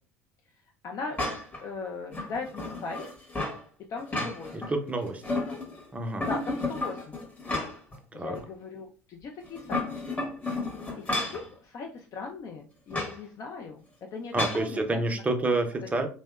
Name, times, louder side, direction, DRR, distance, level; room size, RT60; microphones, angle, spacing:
voice 1, 0.8-1.2 1.6-3.0 3.9-4.6 5.5-5.6 6.2-7.1 8.1-10.3 10.9-13.9 14.1-15.0, left 4 dB, 45° left, 2 dB, 0.4 m, -39 dB
sound 1, 1.2-1.6 2.1-3.6 4.0-4.7 5.0-5.8 6.2-8.0 8.4-8.5 9.5-11.5 12.9-13.2 14.4-14.7, left 2 dB, 20° left, 0.8 m, -32 dB
voice 2, 4.7-5.2 5.9-6.3 8.1-8.4 14.3-16.1, right 2 dB, 15° right, 4 dB, 0.5 m, -28 dB
2.7 x 2.0 x 2.3 m, 0.39 s
hypercardioid pair, 70°, 8 cm